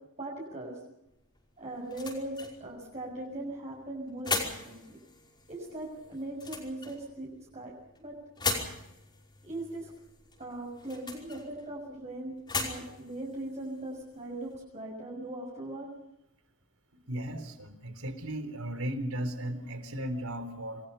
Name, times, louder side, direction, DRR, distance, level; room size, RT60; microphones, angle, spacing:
voice 1, 0.2-0.8 1.6-5.0 5.5-7.7 8.0-8.2 9.4-9.9 10.4-15.9, right 1 dB, 30° right, -2 dB, 6.6 m, -39 dB
sound 1, 1.1-14.6, left 4 dB, 20° left, 5.4 m, -40 dB
voice 2, 17.1-20.8, right 1 dB, 85° right, 9 dB, 4.0 m, -36 dB
28.5 x 21.5 x 5.7 m, 0.85 s
head